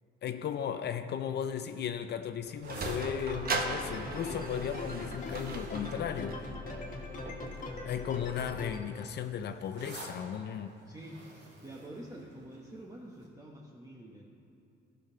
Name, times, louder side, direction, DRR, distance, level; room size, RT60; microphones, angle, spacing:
voice 1, 0.2-6.4 7.8-10.7, left 8 dB, 60° left, 9 dB, 0.5 m, -36 dB
Sliding door, 2.2-8.8, right 3 dB, 50° right, 1.0 m, -40 dB
sound 1, 2.4-6.9 7.6-7.9 8.2-12.8 13.2-13.3, right 2 dB, 80° right, 2.7 m, -50 dB
sound 2, 3.0-8.8, left 2 dB, 40° left, 1.6 m, -41 dB
voice 2, 10.8-14.3, right 1 dB, 15° right, -3 dB, 1.1 m, -47 dB
14.0 x 5.5 x 5.6 m, 2.7 s
cardioid pair, 90°, 20 cm